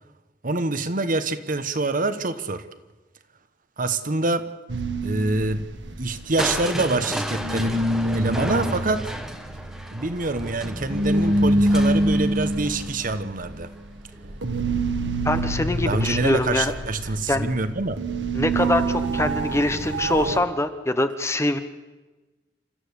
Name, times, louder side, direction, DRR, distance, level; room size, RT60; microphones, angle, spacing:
voice 1, 0.4-2.7 3.8-4.5 5.0-5.7 6.0-7.8 8.1-9.1 9.9-13.7 15.8-18.0, right 2 dB, 50° right, 1.2 m, -25 dB
sound 1, 4.7-7.1 7.3-20.4, right 1 dB, 75° right, 1.6 m, -26 dB
Crushing, 6.4-14.3 15.9-16.4 16.9-17.0, equal, ahead, 1.7 m, -34 dB
voice 2, 15.2-16.7 17.3-17.5 18.3-21.6, left 1 dB, 15° left, 1.1 m, -24 dB
28.5 x 13.5 x 8.3 m
head